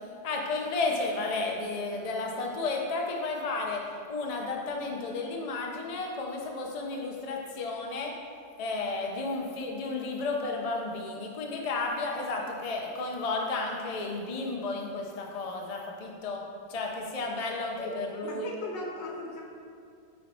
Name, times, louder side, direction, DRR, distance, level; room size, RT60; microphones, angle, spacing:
voice 1, 0.2-8.1 8.6-16.4 16.7-18.5, left 3 dB, 45° left, 0 dB, 0.4 m, -32 dB
voice 2, 17.8-19.4, left 2 dB, 80° left, -1 dB, 1.8 m, -37 dB
8.6 x 4.4 x 4.3 m, 2.4 s
omnidirectional pair, 1.9 m